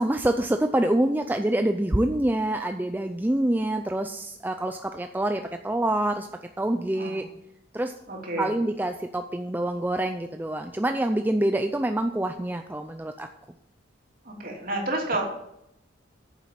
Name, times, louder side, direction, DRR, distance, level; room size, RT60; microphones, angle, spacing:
voice 1, 0.0-6.3 6.6-7.2 7.7-7.9 8.4-13.3, right 1 dB, 10° right, 6 dB, 0.4 m, -26 dB
voice 2, 8.1-8.5 14.2-15.2, right 2 dB, 50° right, 0 dB, 2.9 m, -30 dB
9.4 x 7.3 x 7.5 m, 0.81 s
head